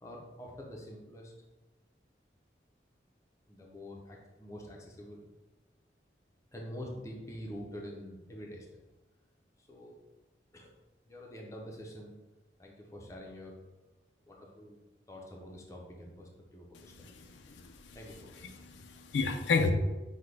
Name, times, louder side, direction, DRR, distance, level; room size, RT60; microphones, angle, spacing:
voice 1, 0.0-1.3 3.5-5.2 6.5-8.8 9.6-9.9 10.5-10.7 11.1-12.1 12.6-13.5 14.3-14.8 15.1-17.1 17.9-18.6, equal, 15° left, -1 dB, 0.6 m, -46 dB
voice 2, 18.6-19.7, left 4 dB, 85° left, 6 dB, 0.4 m, -30 dB
5.8 x 2.2 x 3.3 m, 1.1 s
head